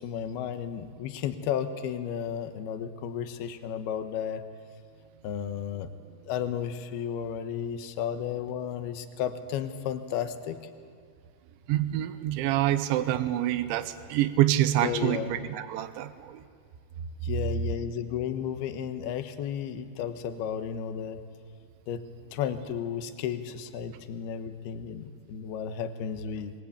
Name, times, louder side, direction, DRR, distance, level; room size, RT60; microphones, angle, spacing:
voice 1, 0.0-4.4 5.2-5.9 6.3-10.6 14.8-15.3 17.2-21.2 21.9-22.0 22.3-26.5, left 8 dB, 70° left, 9 dB, 3.0 m, -33 dB
voice 2, 11.7-16.4, right 13 dB, 85° right, 12 dB, 3.4 m, -26 dB
28.5 x 22.5 x 8.7 m, 2.1 s
omnidirectional pair, 5.2 m